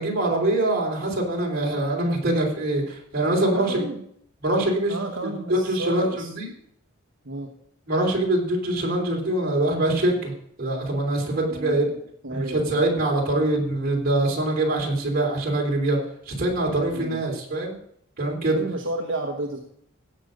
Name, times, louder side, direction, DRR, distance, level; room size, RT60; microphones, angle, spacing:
voice 1, 0.0-3.8 4.4-4.9 5.2-6.1 6.3-6.5 7.9-10.3 10.6-11.9 12.3-16.0 16.3-17.7 18.2-18.6, right 1 dB, 45° right, -1 dB, 3.4 m, -24 dB
voice 2, 3.5-4.0 4.9-6.3 7.2-7.5 11.5-12.8 16.9-17.2 18.5-19.6, right 2 dB, 65° right, 1 dB, 1.3 m, -32 dB
16.0 x 6.6 x 5.1 m, 0.67 s
head